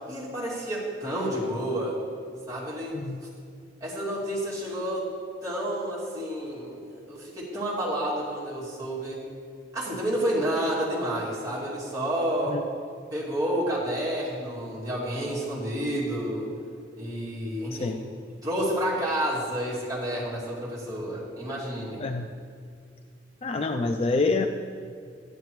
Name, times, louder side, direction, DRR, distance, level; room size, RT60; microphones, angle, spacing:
voice 1, 0.1-2.0 2.5-3.0 3.8-5.1 5.4-9.2 9.7-12.6 13.1-16.5 17.0-18.0 18.4-22.0, right 1 dB, 20° right, -8 dB, 2.7 m, -30 dB
voice 2, 23.4-24.5, left 3 dB, 30° left, 6 dB, 0.3 m, -26 dB
12.5 x 10.5 x 3.1 m, 2.3 s
head